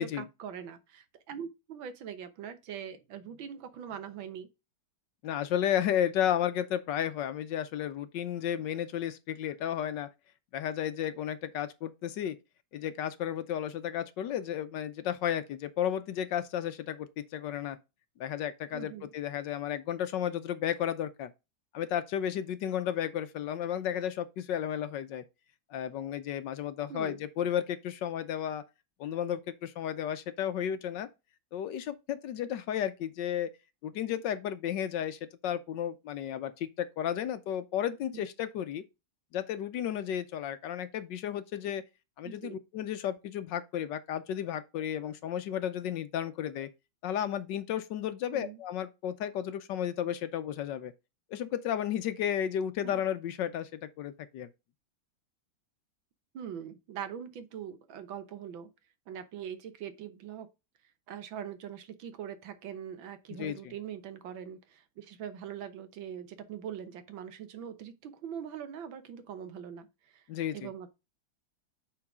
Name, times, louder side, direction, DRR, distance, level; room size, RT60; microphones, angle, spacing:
voice 1, 0.0-4.5 18.7-19.1 26.9-27.2 38.1-38.2 42.2-42.6 48.3-48.6 52.8-52.9 56.3-58.7 59.1-60.5 61.1-70.2 70.5-71.0, right 8 dB, 75° right, 1.7 m, -42 dB
voice 2, 5.2-10.1 10.5-12.4 12.7-17.8 18.2-21.3 21.7-25.2 25.7-28.6 29.0-31.1 31.5-33.5 33.8-38.8 39.3-41.8 42.2-46.7 47.0-50.9 51.3-54.5 63.4-63.7 70.3-70.7, left 10 dB, 70° left, 1.2 m, -33 dB
8.8 x 4.0 x 3.6 m
omnidirectional pair, 2.2 m